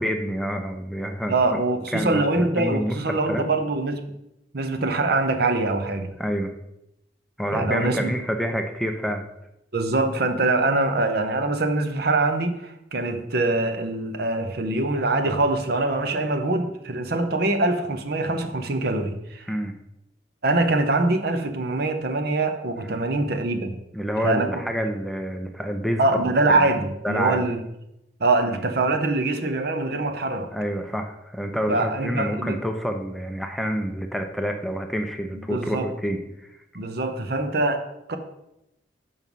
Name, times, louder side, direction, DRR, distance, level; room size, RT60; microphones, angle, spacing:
voice 1, 0.0-1.4 1.9-3.4 6.2-6.5 7.4-9.2 19.5-19.7 22.8-23.0 23.9-26.7 27.0-27.5 28.5-28.6 30.5-36.5, equal, ahead, 5 dB, 0.5 m, -28 dB
voice 2, 1.3-4.0 4.5-6.1 7.5-8.2 9.7-19.5 20.4-23.8 24.2-24.5 26.0-27.6 28.2-30.5 31.7-32.6 35.5-35.9 36.7-38.2, right 2 dB, 60° right, 7 dB, 0.8 m, -23 dB
5.5 x 5.4 x 6.1 m, 0.86 s
head